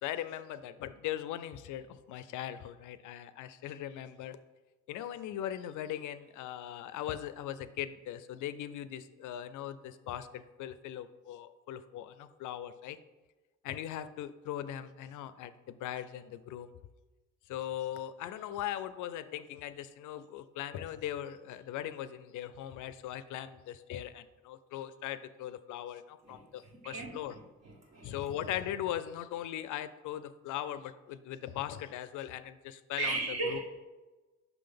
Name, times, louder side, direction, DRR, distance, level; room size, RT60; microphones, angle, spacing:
voice 1, 0.0-4.4 4.9-13.0 13.6-16.7 17.5-27.3 28.0-33.2 33.4-33.6, left 11 dB, 80° left, 13 dB, 0.5 m, -39 dB
voice 2, 26.2-28.1 33.0-33.6, right 3 dB, 60° right, -1 dB, 1.8 m, -37 dB
6.0 x 3.8 x 5.2 m, 1.2 s
cardioid pair, 90°, 30 cm